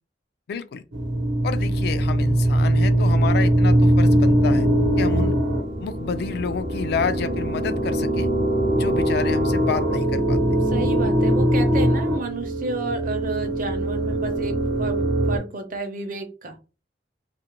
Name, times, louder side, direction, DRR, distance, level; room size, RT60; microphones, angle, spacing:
voice 1, 0.5-0.8 1.4-4.7 5.0-5.3 5.8-8.3 8.7-10.4, left 5 dB, 60° left, 0.3 m, -29 dB
sound 1, 0.9-15.4, right 1 dB, 85° right, 0.8 m, -21 dB
voice 2, 10.7-16.6, right 3 dB, 50° right, 0.6 m, -31 dB
2.4 x 2.1 x 2.9 m
head